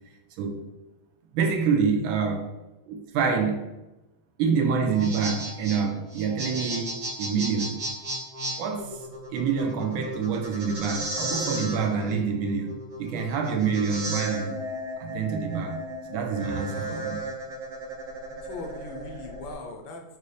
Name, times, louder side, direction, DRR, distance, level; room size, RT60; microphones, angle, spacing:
voice 1, 1.3-2.4 2.9-3.6 4.4-6.9 7.2-7.8 8.6-9.0 9.3-14.6 15.0-15.8 16.1-17.2, right 6 dB, 85° right, 4 dB, 1.5 m, -26 dB
sound 1, 4.8-19.5, right 1 dB, 60° right, 1.5 m, -35 dB
voice 2, 16.6-17.1 18.4-20.0, left 2 dB, 75° left, 3 dB, 1.3 m, -40 dB
5.2 x 2.7 x 3.1 m, 1.0 s
omnidirectional pair, 2.2 m